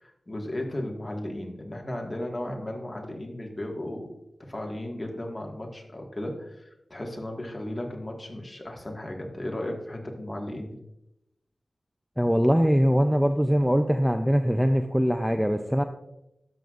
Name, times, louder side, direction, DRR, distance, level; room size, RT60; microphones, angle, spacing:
voice 1, 0.0-4.1 4.5-10.8, left 1 dB, 25° left, 1 dB, 1.6 m, -35 dB
voice 2, 12.2-15.8, equal, ahead, 6 dB, 0.4 m, -22 dB
12.0 x 7.8 x 2.5 m, 0.86 s
wide cardioid pair, 95°, 0 cm